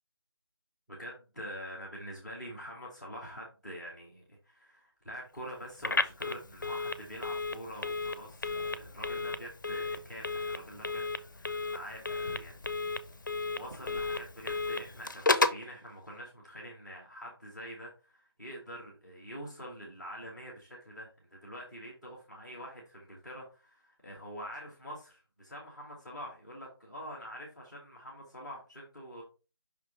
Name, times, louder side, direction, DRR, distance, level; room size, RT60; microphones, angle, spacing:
voice 1, 0.9-11.1 11.3-12.5 13.5-29.2, equal, ahead, -12 dB, 0.5 m, -45 dB
Telephone, 5.8-15.7, left 3 dB, 50° left, 0.6 m, -33 dB
5.6 x 3.4 x 4.9 m, 0.32 s
figure-of-eight pair, 165°, 14 cm